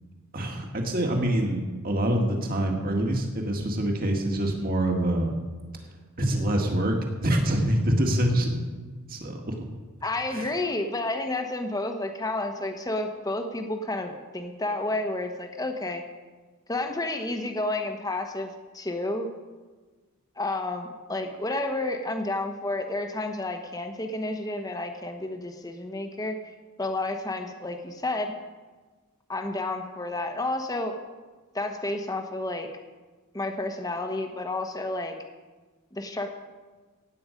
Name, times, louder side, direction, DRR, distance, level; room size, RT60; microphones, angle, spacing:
voice 1, 0.3-5.3 6.2-8.5 9.1-9.6 10.3-10.5, right 1 dB, 45° right, 2 dB, 1.9 m, -25 dB
voice 2, 10.0-16.0 16.7-19.3 20.4-26.4 26.8-28.3 29.3-31.0 31.5-32.7 33.3-35.2 35.9-36.3, left 2 dB, 15° left, 5 dB, 1.1 m, -30 dB
16.5 x 8.9 x 5.2 m, 1.3 s
head